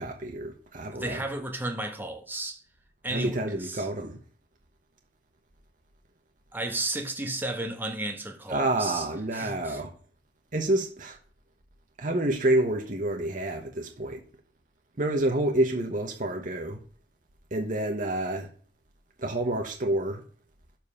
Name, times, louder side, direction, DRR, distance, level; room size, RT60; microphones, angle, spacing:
voice 1, 0.0-1.2 3.1-4.2 8.5-9.9 10.5-11.2 12.0-14.2 15.0-16.8 17.5-18.5 19.2-20.2, right 1 dB, 45° right, 1.2 m, -28 dB
voice 2, 0.9-2.6 3.0-3.9 6.5-9.8, right 2 dB, 10° right, 1.3 m, -33 dB
7.4 x 5.5 x 6.8 m
head